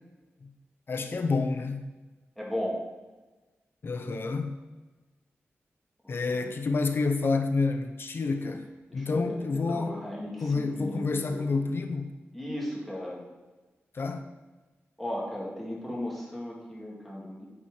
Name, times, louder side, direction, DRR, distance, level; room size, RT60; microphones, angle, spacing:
voice 1, 0.9-1.9 3.8-4.6 6.1-10.0 10.4-12.2 13.9-14.3, left 3 dB, 55° left, 5 dB, 0.8 m, -29 dB
voice 2, 2.4-2.8 6.0-6.5 8.9-11.6 12.3-13.2 15.0-17.5, equal, 5° left, -4 dB, 2.3 m, -36 dB
9.7 x 4.5 x 4.9 m, 1.2 s
wide cardioid pair, 110°, 5 cm